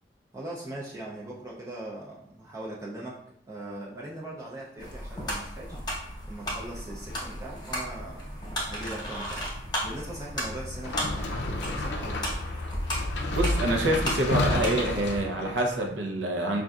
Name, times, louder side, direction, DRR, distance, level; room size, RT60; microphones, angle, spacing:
voice 1, 0.3-3.2 3.5-5.8 6.3-8.3 8.7-9.5 9.8-12.2, right 1 dB, 15° right, -5 dB, 0.4 m, -40 dB
sound 1, 4.8-15.2, equal, 25° left, 0.9 m, -34 dB
sound 2, 10.8-15.9, left 2 dB, 65° left, 0.5 m, -31 dB
voice 2, 13.3-16.6, right 1 dB, 85° right, 1 dB, 0.7 m, -26 dB
5.2 x 2.5 x 2.3 m, 0.71 s
head